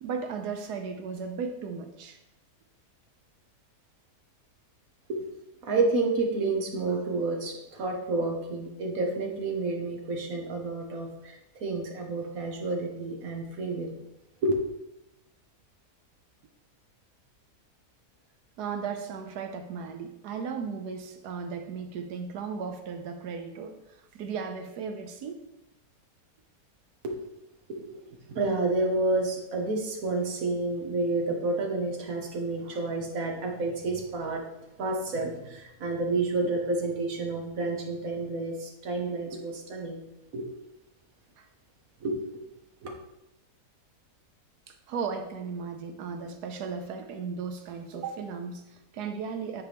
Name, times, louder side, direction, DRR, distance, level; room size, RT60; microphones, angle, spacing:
voice 1, 0.0-2.2 18.6-23.8 24.1-25.4 41.4-41.5 44.7-49.6, right 5 dB, 80° right, 6 dB, 1.3 m, -36 dB
voice 2, 5.6-13.9 14.4-14.5 27.0-27.1 27.7-27.9 28.3-34.4 34.8-40.0 40.3-40.5 42.0-42.2 42.8-42.9, right 2 dB, 60° right, 1 dB, 1.6 m, -30 dB
9.4 x 4.5 x 3.5 m, 0.90 s
omnidirectional pair, 1.7 m